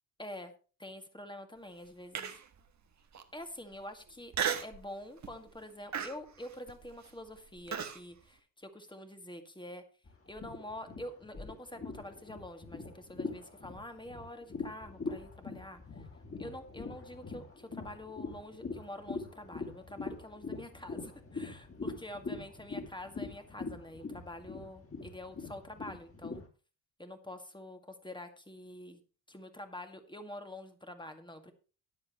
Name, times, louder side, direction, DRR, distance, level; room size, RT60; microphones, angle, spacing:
voice 1, 0.2-0.5 0.8-2.4 3.3-4.3 4.6-9.8 10.3-16.1 16.4-26.4 27.0-29.0 29.3-31.5, left 1 dB, 10° left, 6 dB, 2.2 m, -46 dB
Human voice, 2.1-2.6 3.1-3.2 4.3-4.8 5.2-5.5 5.9-8.0, right 7 dB, 35° right, 1.6 m, -35 dB
sound 1, 10.1-26.5, left 3 dB, 25° left, 3.4 m, -43 dB
13.0 x 10.5 x 3.1 m, 0.35 s
hypercardioid pair, 55°, 49 cm